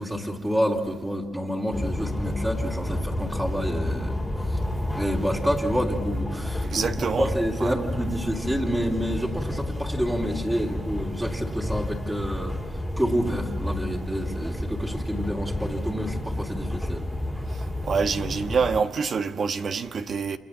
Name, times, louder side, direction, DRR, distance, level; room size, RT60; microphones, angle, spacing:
voice 1, 0.0-4.2 4.9-12.5 13.0-17.0, equal, 10° right, 3.4 m, -28 dB
sound 1, 1.7-18.8, left 1 dB, 5° left, 2.9 m, -30 dB
voice 2, 6.6-7.3 7.6-7.7 17.9-20.4, right 5 dB, 50° right, 1.4 m, -26 dB
29.0 x 27.0 x 7.5 m
cardioid pair, 90°, 0 cm